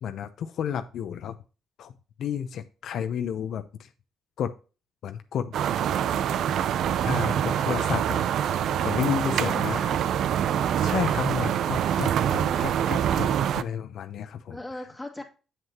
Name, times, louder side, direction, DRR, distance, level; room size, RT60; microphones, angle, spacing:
voice 1, 0.0-1.4 1.8-1.9 2.2-3.9 4.4-4.5 5.0-5.5 7.0-8.2 8.7-9.8 10.8-14.6, left 8 dB, 70° left, 8 dB, 0.6 m, -31 dB
sound 1, 5.5-13.6, right 9 dB, 75° right, 0.4 m, -25 dB
voice 2, 9.2-9.9 12.2-12.8 14.5-15.2, left 1 dB, 5° left, 1 dB, 2.2 m, -38 dB
7.8 x 7.6 x 2.8 m, 0.33 s
cardioid pair, 90°, 0 cm